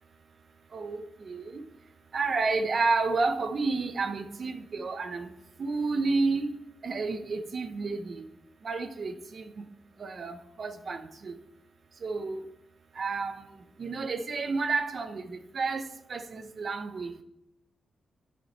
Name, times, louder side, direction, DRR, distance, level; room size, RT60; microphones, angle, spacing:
voice 1, 0.7-1.6 2.1-5.3 5.6-6.5 6.8-8.2 8.6-9.6 10.0-11.3 12.0-12.4 13.0-13.5 13.8-17.2, right 3 dB, 45° right, 0.7 m, -31 dB
10.5 x 6.6 x 4.2 m
wide cardioid pair, 145°, 0 cm